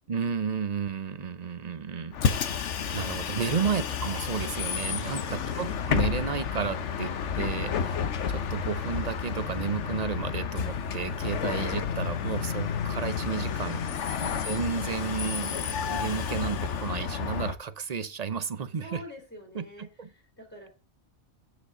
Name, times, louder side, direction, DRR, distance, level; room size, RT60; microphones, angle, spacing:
voice 1, 0.1-2.2 2.9-7.7 8.3-13.8 14.2-19.0 19.5-20.1, right 6 dB, 40° right, 0.7 m, -32 dB
Bus, 2.1-17.6, left 7 dB, 85° left, 1.2 m, -30 dB
voice 2, 3.4-3.8 5.0-5.7 7.6-8.0 14.0-14.4 18.8-20.7, left 1 dB, 10° left, 3.8 m, -47 dB
15.5 x 5.1 x 3.8 m
omnidirectional pair, 1.2 m